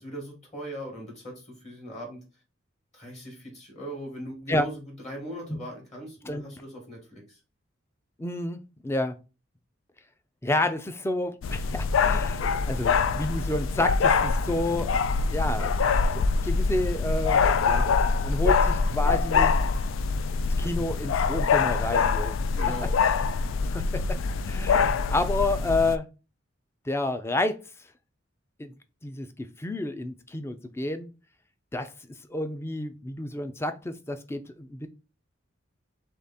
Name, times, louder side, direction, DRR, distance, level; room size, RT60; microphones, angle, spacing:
voice 1, 0.0-2.2 2.9-7.4 22.5-22.9, right 1 dB, 35° left, 2.0 m, -39 dB
voice 2, 8.2-9.2 10.4-15.0 15.3-15.7 16.1-17.9 18.2-19.6 20.6-22.4 23.7-24.2 24.5-26.1 26.9-27.6 28.6-28.7 29.0-29.3 29.6-31.1 31.7-31.9 32.3-34.9, left 2 dB, 15° left, 0.4 m, -30 dB
sound 1, 11.4-26.0, left 5 dB, 90° left, 0.4 m, -24 dB
3.7 x 3.5 x 4.1 m
head